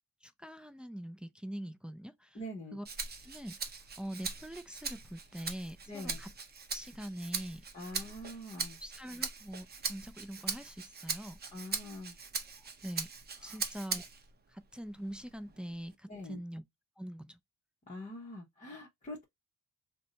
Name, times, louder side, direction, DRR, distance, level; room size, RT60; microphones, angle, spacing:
voice 1, 0.2-2.4 2.7-2.9 3.2-6.3 6.7-7.6 8.8-11.4 12.8-13.1 13.4-14.0 14.5-16.6 17.0-17.4, equal, 5° right, 0.3 m, -43 dB
voice 2, 2.3-2.8 5.9-6.2 7.7-8.8 11.5-12.2 13.4-13.6 16.1-16.4 17.9-19.2, left 1 dB, 25° left, 1.0 m, -44 dB
Rattle (instrument), 2.8-14.3 14.7-15.9, right 5 dB, 35° right, 0.7 m, -41 dB
2.6 x 2.2 x 3.9 m
cardioid pair, 90°, 30 cm